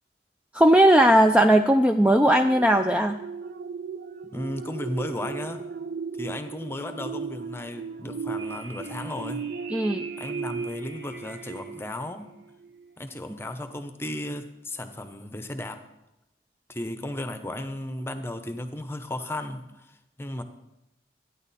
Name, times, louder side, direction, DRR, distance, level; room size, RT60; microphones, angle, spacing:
voice 1, 0.5-3.2 9.7-10.1, right 1 dB, 5° right, 5 dB, 0.3 m, -18 dB
sound 1, 2.3-12.2 12.6-12.8, right 5 dB, 55° right, 0.6 m, -36 dB
voice 2, 4.3-5.7 6.2-9.4 10.2-12.3 13.0-15.8 16.7-20.4, left 1 dB, 15° left, 8 dB, 0.8 m, -35 dB
sound 2, 8.4-11.9, right 5 dB, 75° right, 1.3 m, -44 dB
13.5 x 9.8 x 4.2 m, 0.90 s
head